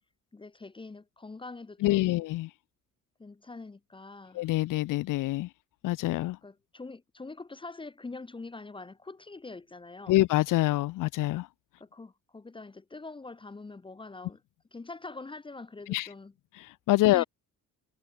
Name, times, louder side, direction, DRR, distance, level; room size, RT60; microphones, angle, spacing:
voice 1, 0.3-2.2 3.2-4.5 6.4-10.2 11.8-14.4 14.7-16.3 17.0-17.2, left 3 dB, 15° left, 1.2 m, -44 dB
voice 2, 1.8-2.5 4.3-5.5 5.8-6.4 10.1-11.5 15.9-16.1 16.9-17.2, left 17 dB, 80° left, 0.5 m, -25 dB
cardioid pair, 165°, 32 cm